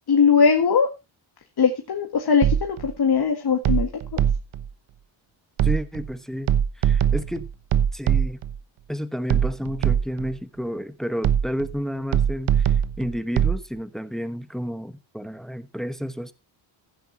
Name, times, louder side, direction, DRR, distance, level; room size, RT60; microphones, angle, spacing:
voice 1, 0.1-0.9 1.6-3.9, left 6 dB, 50° left, 1.7 m, -20 dB
sound 1, 2.4-2.9 3.6-4.7 5.6-6.1 6.5-8.6 9.3-10.3 11.2-11.8 12.1-13.6, right 9 dB, 80° right, 1.1 m, -22 dB
voice 2, 5.6-7.5 7.9-8.4 8.9-16.3, equal, ahead, 1.0 m, -31 dB
15.0 x 9.4 x 2.8 m
cardioid pair, 110°, 48 cm